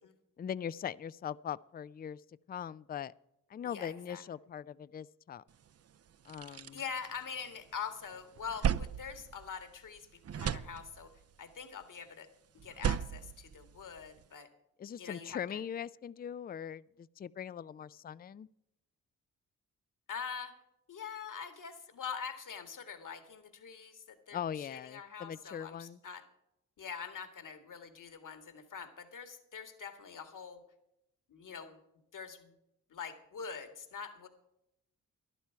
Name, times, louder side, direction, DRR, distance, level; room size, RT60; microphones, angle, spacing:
voice 1, 0.4-2.2 2.5-3.1 3.5-5.4 6.3-6.8 14.8-18.5 24.3-26.0, left 8 dB, 25° left, 20 dB, 0.4 m, -41 dB
voice 2, 3.6-4.2 6.7-11.1 11.4-12.3 12.5-14.5 15.0-15.6 20.1-20.5 20.9-26.2 26.8-30.6 31.3-31.8 32.1-32.5 32.9-34.3, left 6 dB, 55° left, 9 dB, 2.0 m, -44 dB
sound 1, 5.6-5.7 6.1-7.8 8.1-10.0 10.2-11.3 12.6-14.2, right 8 dB, 40° right, 0.6 m, -36 dB
12.0 x 11.5 x 4.6 m, 0.85 s
supercardioid pair, 45°, 38 cm